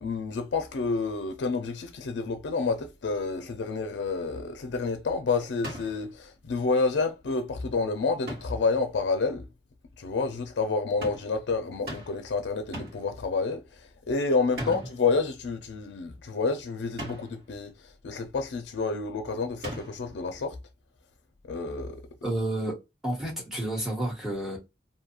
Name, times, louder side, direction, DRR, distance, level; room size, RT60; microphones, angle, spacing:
voice 1, 0.0-9.5 10.0-13.6 14.1-17.7 18.0-20.6 21.5-22.0, left 4 dB, 85° left, 0.4 m, -29 dB
sound 1, 5.6-6.1 8.3-8.7 11.0-11.4 11.9-12.3 12.7-13.1 14.6-15.1 17.0-17.4 19.6-20.1, equal, 60° right, 1.3 m, -39 dB
voice 2, 22.2-22.8 23.0-24.6, right 1 dB, ahead, 1.1 m, -30 dB
2.6 x 2.3 x 2.8 m
head